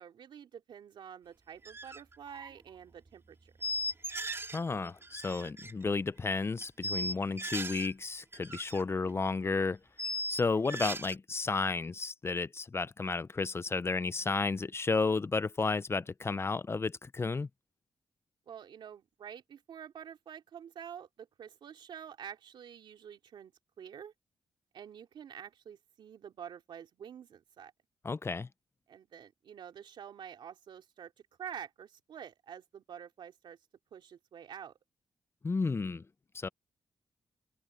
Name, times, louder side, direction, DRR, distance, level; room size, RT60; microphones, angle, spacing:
voice 1, 0.0-3.7 18.5-23.5 23.8-24.1 24.7-27.7 28.9-31.1 31.4-33.6 33.9-34.7, right 8 dB, 75° right, 2.7 m, -48 dB
sound 1, 1.6-2.0 2.3-2.5 3.6-4.6 4.9-5.7 6.6-7.9 8.2-8.8 9.1-9.2 10.0-11.1, equal, 30° right, 3.0 m, -37 dB
voice 2, 4.5-9.8 10.3-17.5 28.0-28.5 35.4-36.0 36.3-36.5, left 4 dB, 30° left, 0.6 m, -32 dB
cardioid pair, 70°, 8 cm